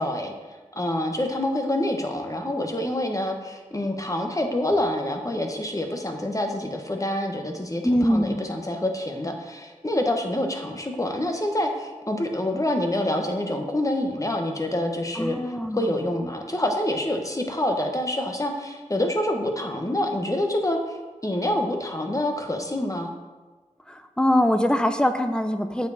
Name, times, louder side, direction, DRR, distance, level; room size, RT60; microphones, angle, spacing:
voice 1, 0.0-7.8 8.1-15.4 15.7-23.1, left 1 dB, 25° left, 3 dB, 1.3 m, -27 dB
voice 2, 7.8-8.4 15.2-15.9 23.9-25.9, left 1 dB, 5° left, 8 dB, 0.8 m, -23 dB
7.7 x 7.2 x 4.2 m, 1.3 s
cardioid pair, 45°, 13 cm